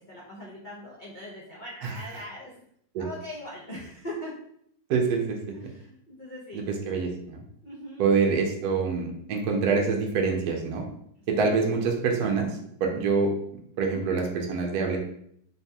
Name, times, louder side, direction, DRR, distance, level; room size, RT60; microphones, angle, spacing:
voice 1, 0.1-2.6 3.0-4.3 5.5-6.6 7.6-8.1, equal, 85° left, -5 dB, 0.4 m, -40 dB
voice 2, 4.9-5.4 6.5-7.4 8.0-10.8 11.3-13.3 13.8-15.0, right 4 dB, 65° right, 2 dB, 1.0 m, -26 dB
3.9 x 3.5 x 2.8 m, 0.70 s
omnidirectional pair, 2.1 m